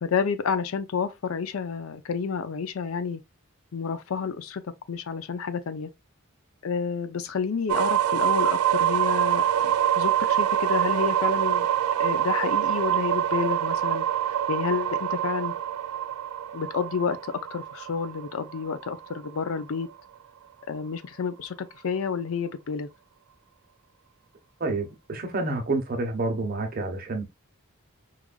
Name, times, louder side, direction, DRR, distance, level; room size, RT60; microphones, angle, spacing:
voice 1, 0.0-3.2 3.7-4.6 4.9-5.9 6.6-11.7 12.0-14.1 14.5-15.5 16.5-19.9 20.7-22.9, left 6 dB, 70° left, 0.5 m, -30 dB
sound 1, 7.7-19.5, right 10 dB, 85° right, 0.3 m, -25 dB
voice 2, 24.6-27.2, right 2 dB, 45° right, 0.9 m, -28 dB
4.7 x 2.5 x 2.2 m
head